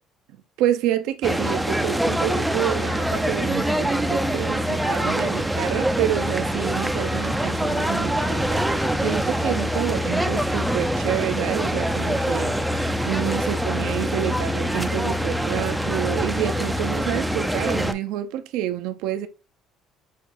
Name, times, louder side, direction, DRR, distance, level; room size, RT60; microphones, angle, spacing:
voice 1, 0.3-19.3, right 12 dB, 85° right, 0.5 m, -28 dB
sound 1, 1.2-17.9, equal, 5° right, 0.4 m, -24 dB
6.2 x 2.4 x 2.5 m
cardioid pair, 105°, 0 cm